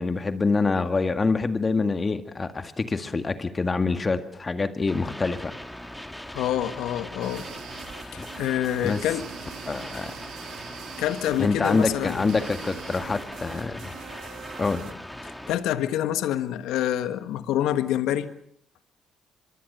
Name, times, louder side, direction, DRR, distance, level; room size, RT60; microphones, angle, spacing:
voice 1, 0.0-5.5 8.2-8.3 8.8-9.0 9.7-10.1 11.4-13.9 14.6-14.9, left 4 dB, 35° left, 9 dB, 1.9 m, -26 dB
sound 1, 4.9-15.6, left 1 dB, 5° left, 2.9 m, -40 dB
voice 2, 6.3-7.5 8.1-9.2 11.0-12.4 15.5-18.3, left 11 dB, 80° left, 11 dB, 1.4 m, -26 dB
sound 2, 7.2-14.9, right 10 dB, 75° right, 1.8 m, -43 dB
24.0 x 22.5 x 6.8 m, 0.68 s
supercardioid pair, 60°, 0 cm